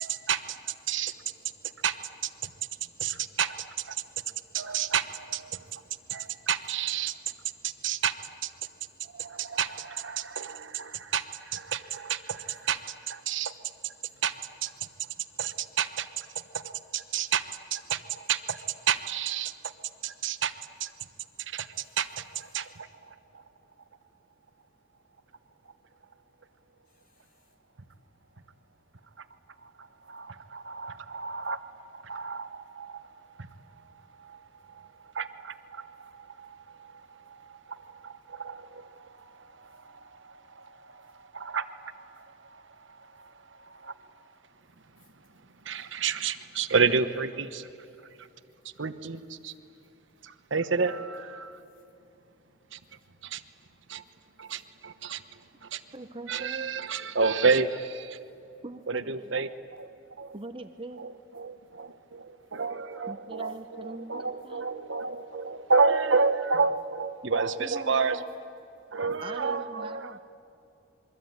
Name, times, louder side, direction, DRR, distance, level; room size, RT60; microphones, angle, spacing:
voice 1, 0.0-1.1 1.8-2.0 2.2-2.5 3.0-4.0 4.5-5.8 6.1-7.1 7.6-8.2 8.4-8.5 9.0-13.5 13.8-13.9 14.2-14.4 14.6-14.9 15.4-17.5 17.7-19.7 20.0-20.5 20.8-20.9 21.4-23.4 29.2-29.3 29.6-44.2 44.9-45.0 45.6-47.7 48.2-48.3 48.8-49.5 50.2-51.6 52.7-52.8 53.2-53.4 53.9-54.0 54.4-55.8 56.3-58.2 58.9-60.4 61.0-68.3 68.9-70.2, right 5 dB, 65° right, 10 dB, 1.1 m, -31 dB
voice 2, 0.8-1.8 2.4-3.2 4.0-4.9 5.6-6.5 7.5-8.0 8.6-9.5 10.9-11.0 14.1-14.2 22.5-22.7 26.9-27.6 29.7-29.8 36.4-36.8 37.1-37.6 38.2-38.4 39.0-40.1, equal, 40° left, 1 dB, 3.9 m, -67 dB
voice 3, 55.9-56.7 58.6-59.3 60.3-61.1 63.1-64.7 67.2-67.3 67.6-68.3 69.2-70.2, right 2 dB, 25° right, 8 dB, 0.8 m, -42 dB
27.0 x 23.0 x 9.4 m, 2.9 s
head